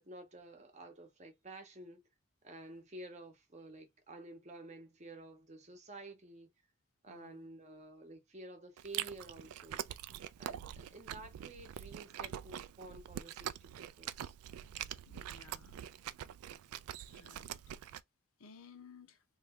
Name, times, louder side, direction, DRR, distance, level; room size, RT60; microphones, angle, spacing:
voice 1, 0.0-2.0 2.4-6.5 7.0-9.8 10.4-14.3, right 2 dB, 30° right, 0.8 m, -51 dB
voice 2, 7.1-7.5 11.1-11.3 15.1-15.8 17.1-17.6 18.4-19.2, left 4 dB, 80° left, 0.7 m, -57 dB
Chewing mastication, 8.8-18.0, right 10 dB, 85° right, 0.3 m, -44 dB
3.3 x 2.2 x 3.5 m
head